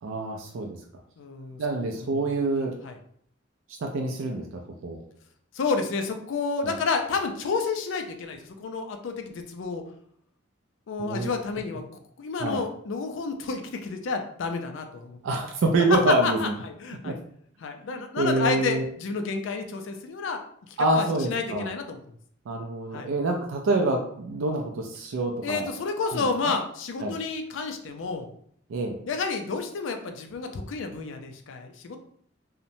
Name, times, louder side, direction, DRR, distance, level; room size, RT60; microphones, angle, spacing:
voice 1, 0.0-0.8 1.6-2.7 3.8-4.5 4.8-5.0 6.6-6.7 11.0-11.3 12.4-12.6 15.2-16.5 17.0-17.1 17.9-18.9 20.8-21.7 22.5-25.7 26.0-26.3 27.0-27.2 28.7-29.0, right 2 dB, 85° right, 2 dB, 0.4 m, -26 dB
voice 2, 1.2-1.6 1.9-2.2 2.8-3.0 5.5-9.8 10.9-11.8 12.2-15.2 15.9-17.2 17.6-20.4 20.7-22.0 22.9-23.1 25.4-28.3 29.1-32.0, left 4 dB, 70° left, 5 dB, 0.4 m, -30 dB
2.9 x 2.1 x 2.6 m, 0.65 s
head